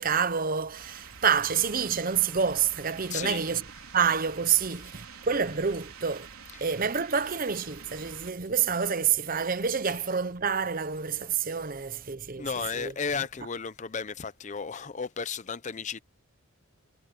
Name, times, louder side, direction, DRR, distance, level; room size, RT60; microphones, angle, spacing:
voice 1, 0.0-3.6 3.9-6.3 6.6-12.5 12.7-12.9, right 6 dB, 40° right, 0.8 m, -28 dB
sound 1, 0.7-8.3, right 6 dB, 75° right, 3.6 m, -47 dB
voice 2, 3.1-3.4 4.8-4.9 6.5-6.8 7.1-7.2 9.8-10.0 12.4-16.0, left 5 dB, 35° left, 0.5 m, -34 dB
head